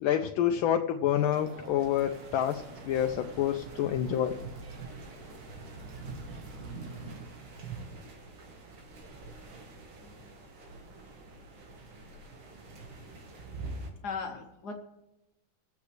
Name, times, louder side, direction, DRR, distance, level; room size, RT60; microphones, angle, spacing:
voice 1, 0.0-4.4, left 10 dB, 80° left, 4 dB, 1.4 m, -28 dB
sound 1, 1.1-7.8, right 3 dB, 50° right, 1.7 m, -45 dB
sound 2, 2.0-13.9, right 3 dB, 90° right, 2.4 m, -47 dB
voice 2, 9.9-10.3 14.0-14.8, left 5 dB, 60° left, 4 dB, 1.5 m, -38 dB
25.0 x 8.5 x 3.3 m, 0.97 s
omnidirectional pair, 2.2 m